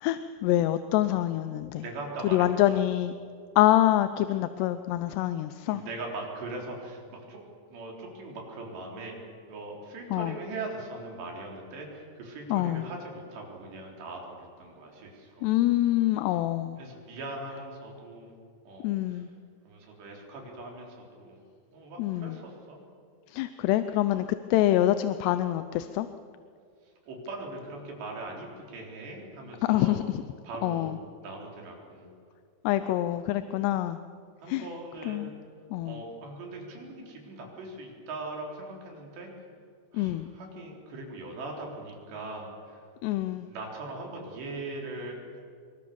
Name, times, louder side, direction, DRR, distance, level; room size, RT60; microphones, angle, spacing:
voice 1, 0.0-1.8 2.2-3.1 3.6-5.8 10.1-10.3 12.5-12.9 15.4-16.8 18.8-19.3 22.0-22.4 23.3-24.3 24.5-26.1 29.7-30.2 30.6-31.0 32.6-34.0 34.5-34.7 35.1-35.3 35.7-36.0 39.9-40.3 43.0-43.5, left 14 dB, 80° left, 11 dB, 2.7 m, -26 dB
voice 2, 1.8-2.8 5.6-7.4 7.7-9.1 9.5-15.5 16.2-16.3 16.8-18.3 18.7-19.3 19.7-21.4 21.7-22.8 27.1-30.0 30.4-30.9 31.2-32.1 34.4-35.3 35.8-39.3 39.9-42.9 43.5-45.4, right 2 dB, 70° right, 0 dB, 6.2 m, -40 dB
26.0 x 23.0 x 7.0 m, 2.2 s
omnidirectional pair, 5.1 m